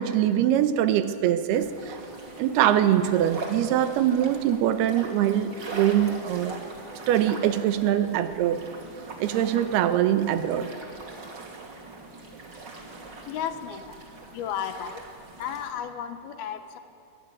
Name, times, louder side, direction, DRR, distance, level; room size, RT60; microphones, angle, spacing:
voice 1, 0.0-2.0 2.4-6.5 7.1-8.6 9.2-10.7, right 11 dB, 85° right, 10 dB, 3.0 m, -23 dB
sound 1, 1.5-15.7, right 3 dB, 30° right, 2.7 m, -41 dB
voice 2, 13.3-13.8 14.3-15.0 15.4-16.8, left 9 dB, 75° left, 9 dB, 3.0 m, -33 dB
23.0 x 18.5 x 9.6 m, 2.6 s
omnidirectional pair, 4.5 m